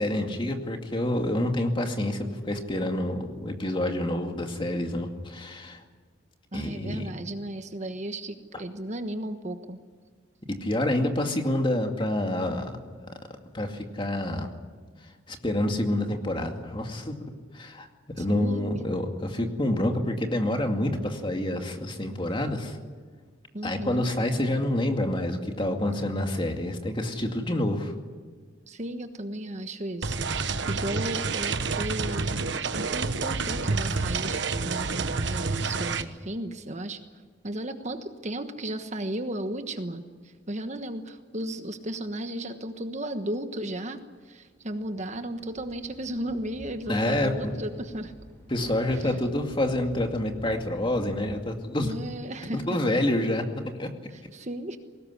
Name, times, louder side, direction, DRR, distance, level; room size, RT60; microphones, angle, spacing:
voice 1, 0.0-5.8 6.5-7.1 10.6-12.8 13.5-14.5 15.3-17.2 17.5-17.9 18.2-22.8 23.6-27.9 46.9-47.5 48.5-51.9 52.5-53.4 53.8-53.9, left 1 dB, 25° left, 4 dB, 2.3 m, -27 dB
voice 2, 6.5-9.8 18.2-18.8 23.5-24.1 28.7-30.3 30.7-32.4 32.7-37.0 37.4-40.0 40.5-48.1 48.6-49.1 51.8-52.6 54.1-54.8, right 1 dB, 40° right, 8 dB, 1.3 m, -35 dB
sound 1, 30.0-36.0, right 4 dB, 65° right, 1.2 m, -28 dB
sound 2, 44.5-51.4, equal, 10° left, 7.7 m, -49 dB
21.5 x 18.5 x 9.8 m, 1.5 s
head